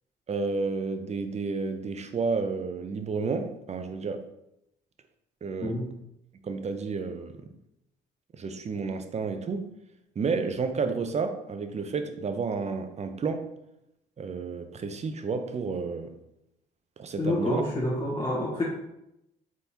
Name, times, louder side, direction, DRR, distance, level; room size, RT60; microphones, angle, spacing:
voice 1, 0.3-4.3 5.4-5.8 6.4-7.5 8.3-9.7 10.2-13.5 14.2-16.1 17.0-17.6, right 4 dB, 35° right, 8 dB, 0.6 m, -31 dB
voice 2, 17.2-18.6, left 1 dB, 25° left, -5 dB, 1.3 m, -28 dB
4.1 x 3.5 x 2.9 m, 0.84 s
hypercardioid pair, 55°, 21 cm